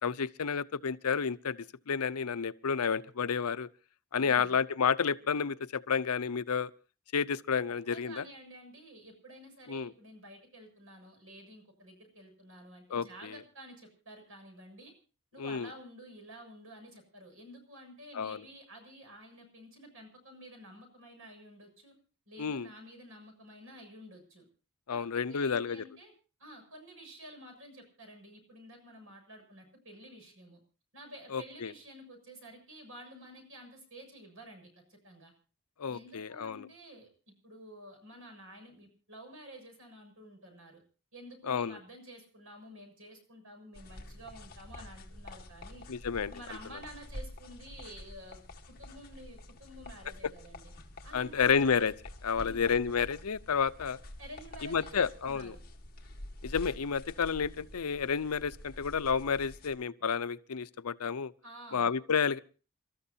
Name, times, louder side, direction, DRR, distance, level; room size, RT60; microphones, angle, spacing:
voice 1, 0.0-3.7 4.1-6.7 7.1-8.2 9.7-9.9 12.9-13.4 15.4-15.7 18.1-18.4 22.4-22.7 24.9-25.8 31.3-31.7 35.8-36.7 41.5-41.8 45.9-46.3 51.1-51.9 52.2-54.0 54.6-55.6 56.4-61.3 61.7-62.4, left 6 dB, 85° left, 0.6 m, -30 dB
voice 2, 4.1-4.6 7.9-14.9 15.3-22.0 22.3-24.5 24.9-26.1 26.4-30.6 30.9-35.3 35.9-37.1 37.4-40.8 41.1-45.8 46.3-48.4 48.7-50.7 51.0-51.8 52.3-52.7 54.2-55.6 61.4-61.9, right 1 dB, 65° right, 7.1 m, -51 dB
sound 1, 43.7-59.8, left 1 dB, 45° left, 2.0 m, -48 dB
29.5 x 13.5 x 2.8 m
head